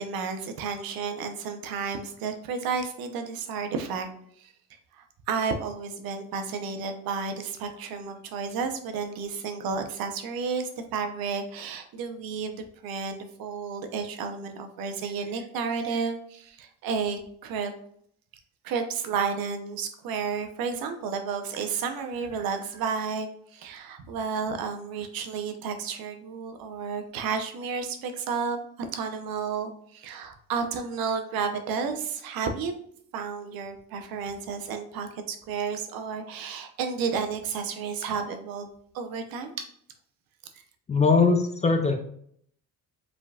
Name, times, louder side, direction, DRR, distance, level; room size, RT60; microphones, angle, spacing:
voice 1, 0.0-4.1 4.4-4.5 4.9-17.7 18.6-28.6 28.9-32.7 33.1-38.7 38.9-39.7, right 5 dB, 75° right, 6 dB, 0.8 m, -32 dB
voice 2, 40.9-41.9, left 4 dB, 20° left, 4 dB, 0.4 m, -21 dB
4.9 x 3.7 x 2.3 m, 0.66 s
cardioid pair, 165°, 35 cm